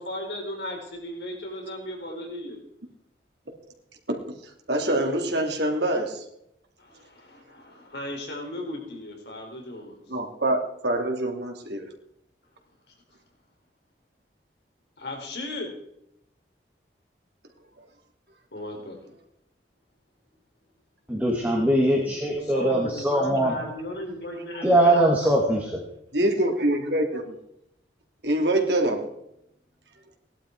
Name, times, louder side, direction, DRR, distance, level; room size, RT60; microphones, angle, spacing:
voice 1, 0.0-2.6 6.8-9.9 15.0-15.7 18.5-19.0 22.5-24.9, left 1 dB, 75° left, 1 dB, 4.2 m, -36 dB
voice 2, 4.7-6.2 10.1-11.9 26.1-27.2 28.2-29.1, right 1 dB, 75° right, 3 dB, 2.9 m, -25 dB
voice 3, 21.1-23.6 24.6-25.8, right 1 dB, 10° right, -2 dB, 2.4 m, -21 dB
18.0 x 11.5 x 4.7 m, 0.78 s
head